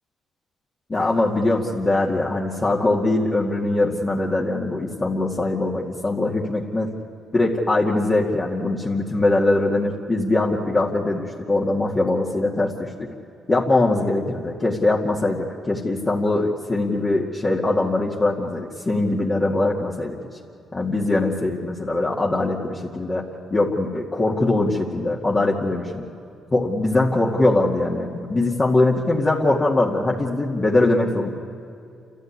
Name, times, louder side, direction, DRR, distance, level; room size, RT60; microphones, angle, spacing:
voice 1, 0.9-6.9 7.3-13.1 13.5-20.2 20.7-23.2 23.5-26.0 26.5-31.3, left 2 dB, 25° left, -4 dB, 2.2 m, -22 dB
29.0 x 13.5 x 9.7 m, 2.5 s
cardioid pair, 90°, 0 cm